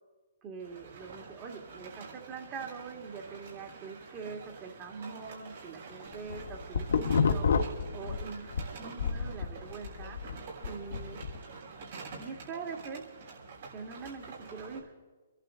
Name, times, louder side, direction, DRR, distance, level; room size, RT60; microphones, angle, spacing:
voice 1, 0.4-8.5 8.8-10.2 10.6-11.2 12.2-13.0 13.7-14.9, right 5 dB, 30° right, 2 dB, 2.3 m, -43 dB
sound 1, 0.6-14.8, right 4 dB, 65° right, 6.1 m, -47 dB
sound 2, 6.1-8.7 9.0-11.4, left 5 dB, 75° left, 1.3 m, -29 dB
27.5 x 11.5 x 3.9 m, 1.3 s
hypercardioid pair, 140°, 0 cm